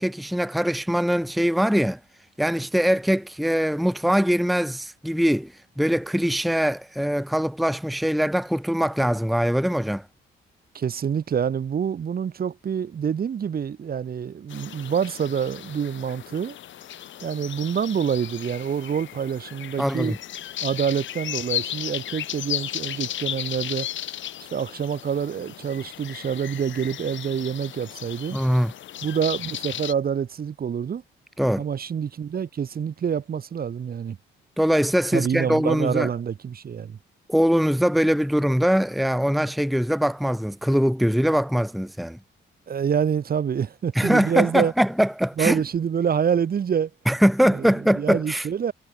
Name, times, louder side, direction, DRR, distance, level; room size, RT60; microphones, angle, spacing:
voice 1, 0.0-2.0 2.4-10.0 19.8-20.2 28.3-28.7 31.4-31.6 34.6-36.1 37.3-42.2 43.9-45.6 47.1-48.5, equal, ahead, 1.1 m, -22 dB
voice 2, 10.7-16.6 17.2-20.2 20.6-23.9 24.5-28.4 29.0-31.0 31.6-34.2 35.1-37.0 42.7-44.7 45.4-46.9 47.5-48.7, right 7 dB, 50° right, 2.2 m, -26 dB
sound 1, 14.5-29.9, left 11 dB, 75° left, 5.1 m, -35 dB
cardioid pair, 90°, 20 cm